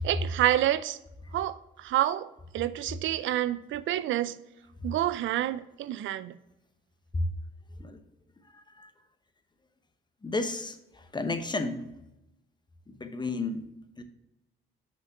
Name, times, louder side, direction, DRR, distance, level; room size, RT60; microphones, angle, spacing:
voice 1, 0.0-1.0 1.3-4.4 4.8-6.3, right 13 dB, 75° right, 0.5 m, -28 dB
voice 2, 10.2-10.7 11.1-11.8 13.0-13.6 14.0-14.1, left 3 dB, 20° left, 1.0 m, -31 dB
6.1 x 6.0 x 6.0 m
cardioid pair, 90°, 20 cm